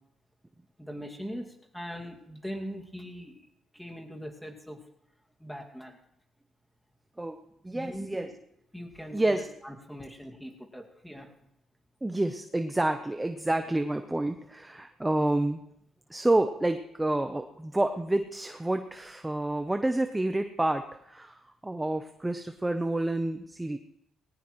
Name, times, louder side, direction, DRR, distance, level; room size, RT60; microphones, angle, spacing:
voice 1, 0.8-1.5 1.7-3.4 3.8-4.8 5.4-6.0 7.7-8.3 8.7-9.4 9.6-11.3, equal, 5° left, 1 dB, 2.2 m, -41 dB
voice 2, 7.6-8.3 9.1-9.5 12.0-15.6 16.1-23.8, right 1 dB, 10° right, 7 dB, 0.8 m, -29 dB
19.5 x 18.0 x 3.1 m, 0.76 s
cardioid pair, 90°, 0 cm